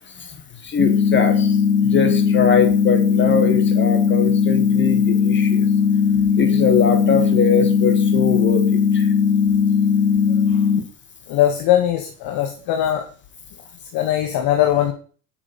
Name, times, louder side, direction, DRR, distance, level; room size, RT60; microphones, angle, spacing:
voice 1, 0.2-1.5 1.8-5.6 6.4-9.1, left 5 dB, 25° left, 5 dB, 3.2 m, -22 dB
sound 1, 0.8-10.8, left 7 dB, 85° left, 4.0 m, -18 dB
voice 2, 11.3-13.0 13.9-14.9, left 12 dB, 55° left, 4 dB, 2.2 m, -20 dB
9.7 x 7.4 x 6.8 m, 0.40 s
hypercardioid pair, 85°, 45 cm